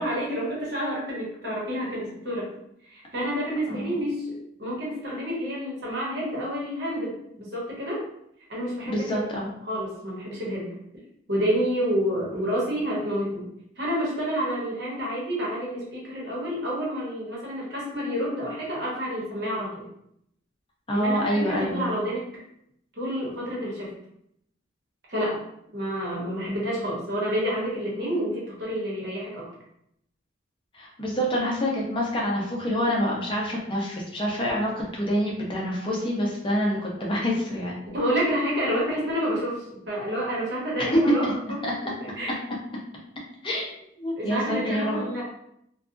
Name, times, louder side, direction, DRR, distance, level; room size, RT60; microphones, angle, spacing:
voice 1, 0.0-2.5 2.9-4.3 4.6-8.0 8.5-9.2 9.7-10.7 11.3-13.5 13.8-19.8 20.9-22.3 23.0-23.9 25.1-25.4 25.7-29.5 37.9-41.2 41.5-41.7 42.2-42.4 44.2-45.2, equal, 60° right, -5 dB, 1.0 m, -29 dB
voice 2, 3.7-4.0 8.9-9.5 12.4-12.5 20.9-21.9 30.7-37.8 41.2-41.3 41.6-41.7 43.4-43.6 44.0-45.0, equal, 25° left, -3 dB, 0.6 m, -27 dB
2.6 x 2.3 x 2.5 m, 0.75 s
head